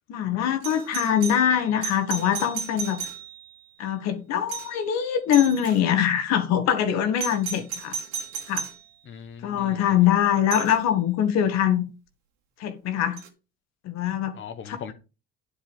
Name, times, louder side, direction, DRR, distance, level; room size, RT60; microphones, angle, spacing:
voice 1, 0.1-3.0 3.8-8.0 8.5-8.7 9.4-11.8 12.6-13.2 13.8-14.4 14.7-14.9, left 9 dB, 65° left, 1.7 m, -23 dB
Doorbell, 0.6-3.6 4.5-4.9 5.3-5.8 7.2-8.8 10.5-10.8 13.2-13.3, right 7 dB, 75° right, 2.4 m, -34 dB
voice 2, 9.0-10.0 14.3-14.9, left 7 dB, 40° left, 1.3 m, -40 dB
10.5 x 5.0 x 5.5 m
hypercardioid pair, 65°, 29 cm